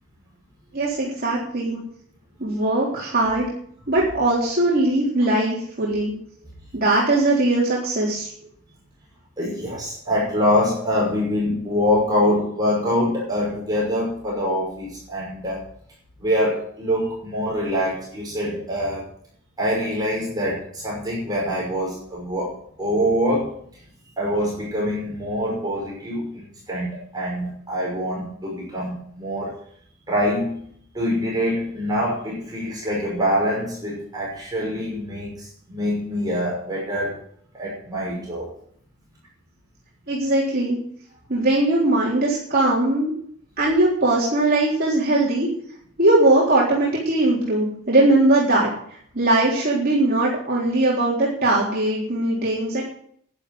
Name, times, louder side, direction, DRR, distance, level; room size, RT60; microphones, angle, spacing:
voice 1, 0.7-1.8 2.4-3.5 3.9-6.1 6.7-8.3 40.1-40.8 41.3-43.1 43.6-45.5 46.0-48.7 49.1-52.8, right 2 dB, 45° right, -5 dB, 3.8 m, -20 dB
voice 2, 9.4-15.6 16.2-19.0 19.6-23.5 24.2-26.4 26.7-29.5 30.1-30.6 30.9-37.2 37.5-38.5, equal, 20° right, -4 dB, 5.8 m, -24 dB
11.5 x 11.0 x 7.8 m, 0.64 s
head